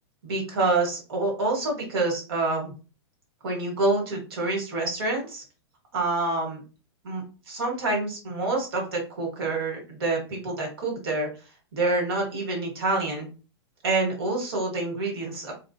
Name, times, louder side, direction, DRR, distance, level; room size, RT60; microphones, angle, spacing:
voice 1, 0.2-2.7 3.4-5.4 5.9-6.6 7.0-11.3 11.7-13.3 13.8-15.5, right 2 dB, 55° right, 0 dB, 1.2 m, -27 dB
2.6 x 2.3 x 2.3 m, 0.33 s
supercardioid pair, 175°, 15 cm